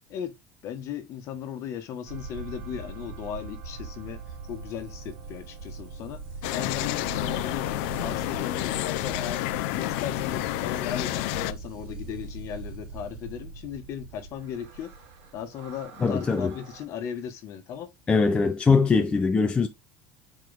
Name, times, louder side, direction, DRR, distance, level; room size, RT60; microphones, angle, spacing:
voice 1, 0.6-4.2 4.5-6.2 6.5-7.7 8.0-9.4 9.7-14.9 15.3-17.9, left 9 dB, 50° left, 1.3 m, -37 dB
sound 1, 2.1-16.8, right 4 dB, 85° right, 2.5 m, -41 dB
sound 2, 6.4-11.5, left 17 dB, 85° left, 0.5 m, -29 dB
voice 2, 16.0-16.5 18.1-19.7, left 4 dB, 15° left, 0.6 m, -22 dB
6.0 x 4.6 x 3.5 m
cardioid pair, 145°, 6 cm